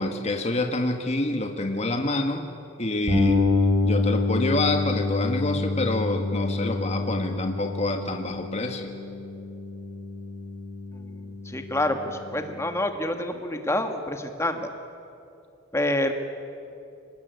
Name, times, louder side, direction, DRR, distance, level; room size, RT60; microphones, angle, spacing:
voice 1, 0.0-2.5 2.8-3.4 3.8-8.9, left 2 dB, 35° left, 5 dB, 1.6 m, -27 dB
sound 1, 3.1-12.8, left 3 dB, 40° right, 7.5 m, -28 dB
voice 2, 10.9-14.7 15.7-16.1, left 1 dB, 15° left, 6 dB, 1.7 m, -28 dB
24.0 x 20.0 x 9.4 m, 2.7 s
head